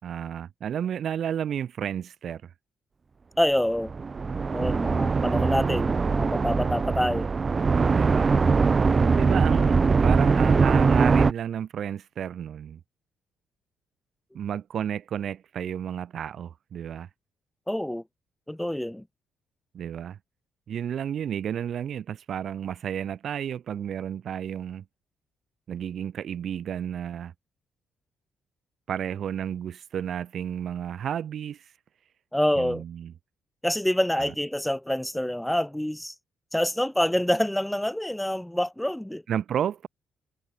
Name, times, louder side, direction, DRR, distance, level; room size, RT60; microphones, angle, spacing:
voice 1, 0.0-2.5 7.7-8.3 9.1-12.8 14.3-17.1 19.7-20.2 20.7-24.8 25.7-27.3 28.9-31.7 32.6-33.1 34.2-34.3 39.3-39.9, right 9 dB, 60° right, 4.0 m, -32 dB
voice 2, 3.4-3.9 4.5-7.3 17.7-18.0 18.5-19.0 32.3-32.8 33.6-36.1 36.5-39.2, left 1 dB, 5° left, 6.6 m, -26 dB
sound 1, 3.8-11.3, right 4 dB, 35° right, 0.9 m, -22 dB
cardioid pair, 90°, 0 cm